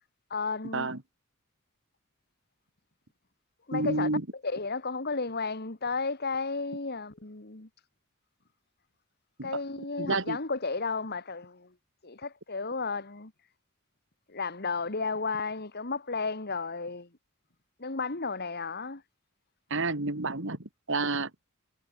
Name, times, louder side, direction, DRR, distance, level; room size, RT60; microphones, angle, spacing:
voice 1, 0.3-0.9 3.7-4.1 4.4-7.7 9.4-11.7 12.0-13.3 14.3-17.1 17.8-19.0, left 4 dB, 50° left, 2.0 m, -33 dB
voice 2, 3.7-4.2 9.4-9.5 10.0-10.4 19.7-21.3, right 3 dB, 65° right, 2.6 m, -30 dB
head